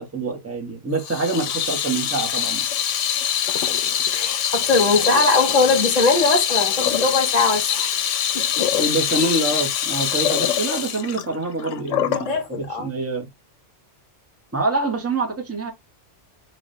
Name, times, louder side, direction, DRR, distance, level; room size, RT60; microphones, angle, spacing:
voice 1, 0.0-2.7 8.8-13.3 14.5-15.7, right 3 dB, 15° right, 0.9 m, -26 dB
Water tap faucet / Sink (filling or washing), 1.0-12.3, left 9 dB, 90° left, 0.9 m, -23 dB
voice 2, 4.1-8.7 9.2-9.4 12.3-12.9, left 3 dB, 35° left, 1.1 m, -21 dB
3.3 x 2.4 x 4.0 m
omnidirectional pair, 1.2 m